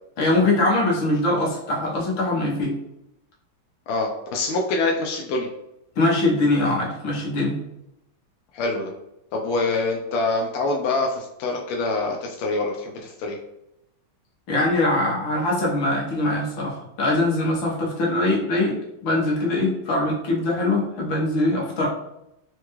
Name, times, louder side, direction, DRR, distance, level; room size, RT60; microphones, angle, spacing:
voice 1, 0.2-2.7 6.0-7.6 14.5-21.9, left 2 dB, 70° left, -4 dB, 1.7 m, -22 dB
voice 2, 3.9-5.5 8.5-8.9 9.3-13.4, left 3 dB, 90° left, 0 dB, 1.4 m, -25 dB
4.6 x 2.2 x 3.0 m, 0.85 s
omnidirectional pair, 2.3 m